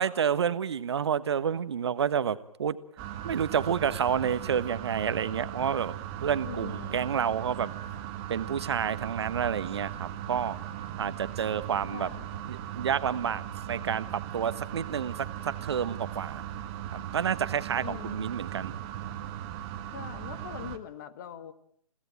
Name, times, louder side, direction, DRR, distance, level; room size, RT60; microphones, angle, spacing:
voice 1, 0.0-2.8 3.2-5.9 6.2-7.7 8.3-10.6 11.0-12.1 12.5-15.1 15.6-16.5 16.9-18.7, right 8 dB, 45° right, 14 dB, 1.5 m, -29 dB
sound 1, 3.0-20.8, right 11 dB, 20° right, 1.7 m, -38 dB
voice 2, 6.4-7.1 11.9-12.3 17.8-18.2 19.9-21.5, left 10 dB, 30° left, 12 dB, 1.9 m, -42 dB
30.0 x 17.0 x 9.1 m, 0.66 s
figure-of-eight pair, 140°, 19 cm